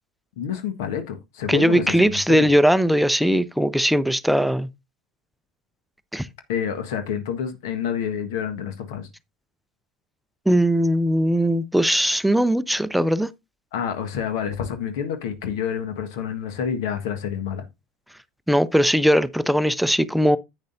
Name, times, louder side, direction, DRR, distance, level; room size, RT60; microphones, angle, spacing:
voice 1, 0.4-2.5 6.5-9.1 13.7-17.6, left 8 dB, 65° left, 1.5 m, -28 dB
voice 2, 1.5-4.7 6.1-6.3 10.5-13.3 18.5-20.4, equal, ahead, 0.6 m, -19 dB
10.5 x 8.7 x 2.6 m
figure-of-eight pair, 70°, 2 cm